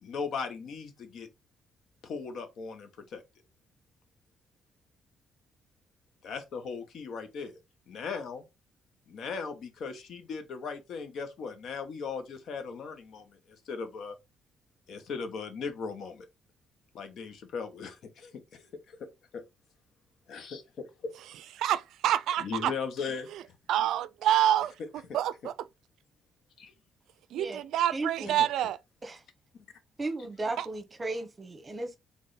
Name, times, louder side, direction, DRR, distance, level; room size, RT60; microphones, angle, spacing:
voice 1, 0.0-1.3 2.0-3.2 6.2-7.6 7.9-8.4 9.1-14.2 14.9-16.3 16.9-19.4 20.3-21.1 22.4-23.6 26.6-26.7 29.5-29.6, left 5 dB, 65° left, 1.1 m, -38 dB
voice 2, 21.6-22.7 23.7-24.7 25.1-25.5 27.3-28.8 30.6-30.7, right 11 dB, 85° right, 0.3 m, -27 dB
voice 3, 27.9-28.4 29.0-29.2 30.0-32.0, right 2 dB, 30° right, 1.0 m, -35 dB
3.5 x 3.2 x 4.0 m
cardioid pair, 90°, 0 cm